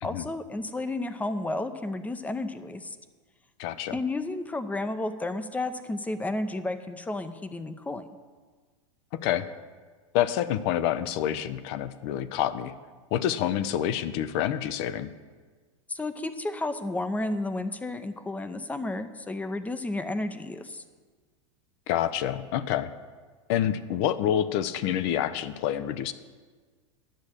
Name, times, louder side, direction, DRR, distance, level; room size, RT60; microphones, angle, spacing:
voice 1, 0.0-3.0 3.9-8.1 15.9-20.8, left 2 dB, 10° left, 11 dB, 0.6 m, -32 dB
voice 2, 3.6-4.0 9.1-9.5 10.1-12.7 13.1-15.1 21.9-22.9 23.5-26.1, left 11 dB, 55° left, 14 dB, 0.7 m, -27 dB
10.5 x 7.2 x 6.6 m, 1.5 s
hypercardioid pair, 110°, 16 cm